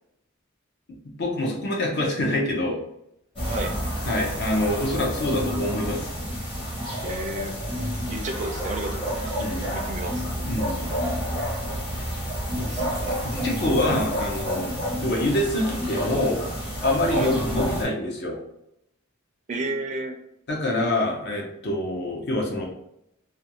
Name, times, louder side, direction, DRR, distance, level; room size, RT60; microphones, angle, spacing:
voice 1, 1.2-2.8 4.0-6.1 9.4-9.8 10.4-11.0 13.2-14.7 15.0-16.4 16.8-18.4 20.5-22.7, left 1 dB, 55° left, -1 dB, 0.5 m, -25 dB
sound 1, 3.4-17.8, equal, 25° left, 0.8 m, -29 dB
voice 2, 3.5-3.8 7.0-7.6 8.1-10.4 12.6-13.5 17.1-17.3 19.5-20.2, right 2 dB, 35° right, 3 dB, 0.4 m, -33 dB
2.4 x 2.2 x 2.7 m, 0.80 s
head